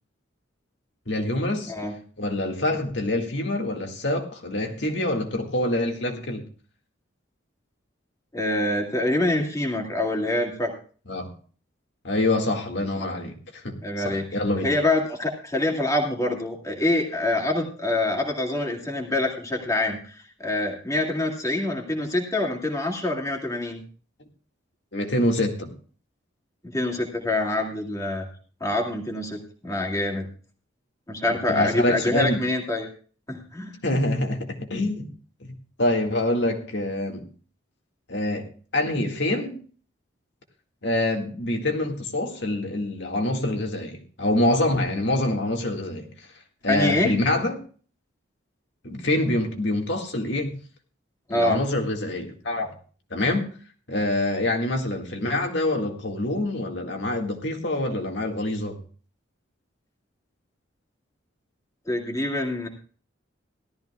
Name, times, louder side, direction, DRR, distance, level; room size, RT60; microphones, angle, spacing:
voice 1, 1.1-1.7 2.2-6.5 11.1-11.3 12.0-14.7 24.9-25.7 31.5-32.4 33.8-35.1 35.4-37.3 38.1-39.6 40.8-46.1 46.6-47.6 48.8-50.5 51.3-52.7 53.1-53.5 53.9-58.8, left 1 dB, 60° left, 3 dB, 2.0 m, -26 dB
voice 2, 8.3-10.8 13.0-13.1 13.8-14.2 14.6-23.8 26.6-28.3 28.6-30.3 31.1-32.9 33.3-33.8 46.7-47.1 51.3-51.6 61.9-62.7, left 2 dB, 15° left, 0 dB, 2.2 m, -25 dB
17.5 x 13.5 x 2.4 m, 0.41 s
head